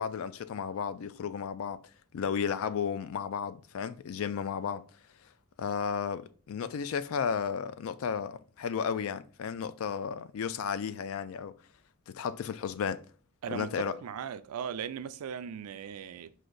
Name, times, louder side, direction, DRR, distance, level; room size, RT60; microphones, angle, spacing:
voice 1, 0.0-1.8 2.1-4.8 5.6-11.5 12.1-13.0 13.5-14.0, left 7 dB, 65° left, 0.3 m, -33 dB
voice 2, 13.4-16.3, right 7 dB, 80° right, 0.4 m, -38 dB
5.0 x 2.5 x 3.8 m
head